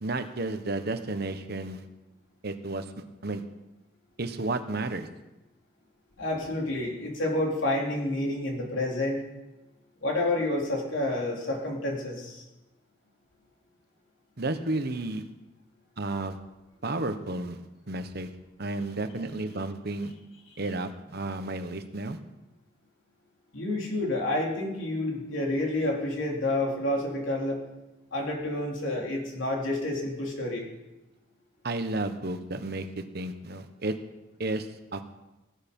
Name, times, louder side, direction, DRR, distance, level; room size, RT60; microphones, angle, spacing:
voice 1, 0.0-1.8 2.4-2.8 3.2-3.4 4.2-5.1 14.4-15.2 16.0-16.4 16.8-17.6 17.9-18.3 18.6-20.1 20.6-22.2 31.6-33.9 34.4-35.0, right 2 dB, 55° right, 9 dB, 1.1 m, -32 dB
voice 2, 6.2-9.2 10.0-12.4 23.5-27.6 28.1-30.7, left 1 dB, 75° left, -1 dB, 3.4 m, -29 dB
18.5 x 9.4 x 5.4 m, 1.0 s
head